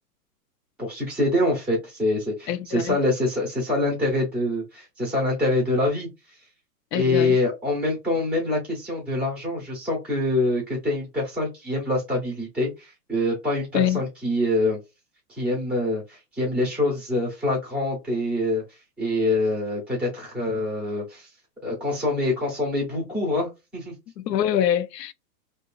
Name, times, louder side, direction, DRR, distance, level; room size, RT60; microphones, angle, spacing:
voice 1, 0.8-6.1 6.9-14.8 15.4-18.6 19.0-21.3 21.6-23.9, left 2 dB, 5° right, 0.4 m, -25 dB
voice 2, 2.5-3.0 6.9-7.4 13.7-14.0 24.2-25.1, left 10 dB, 80° left, 0.6 m, -24 dB
2.7 x 2.3 x 2.2 m
hypercardioid pair, 135°, 48 cm